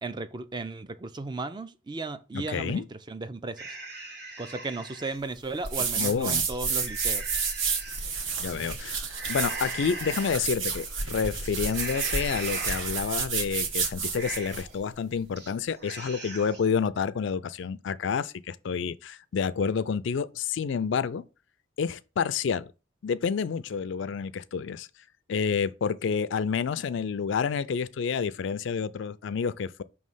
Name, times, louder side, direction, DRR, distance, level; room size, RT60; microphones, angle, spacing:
voice 1, 0.0-3.8 4.4-7.3, right 3 dB, 20° right, 0.3 m, -35 dB
voice 2, 2.3-2.8 6.0-6.5 8.4-9.0 9.3-21.2 21.8-22.7 23.0-24.9 25.3-29.8, left 6 dB, 65° left, 0.4 m, -29 dB
sound 1, 3.6-5.2 5.6-5.7 6.2-8.1 9.1-10.4 10.8-11.2 11.7-13.2 13.6-13.7 14.0-14.8 15.2-15.5 15.8-16.7, right 2 dB, 55° right, 1.4 m, -39 dB
sound 2, 5.6-14.7, right 5 dB, 75° right, 1.1 m, -31 dB
5.7 x 3.1 x 5.4 m
head